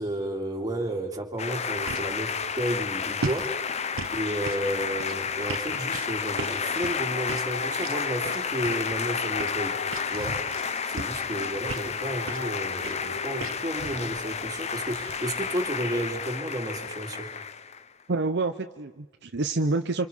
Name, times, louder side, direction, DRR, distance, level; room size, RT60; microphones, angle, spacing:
voice 1, 0.0-3.6 4.1-9.8 10.1-10.4 10.9-17.3, right 1 dB, 20° right, 1 dB, 2.8 m, -32 dB
sound 1, 1.4-17.8, left 6 dB, 35° left, 0.7 m, -31 dB
sound 2, 1.5-16.2, right 4 dB, 85° right, 1.0 m, -40 dB
sound 3, 4.1-14.9, left 3 dB, 75° left, 1.5 m, -43 dB
voice 2, 18.1-20.1, right 3 dB, 55° right, 7 dB, 0.8 m, -27 dB
28.0 x 26.0 x 5.6 m, 1.2 s
head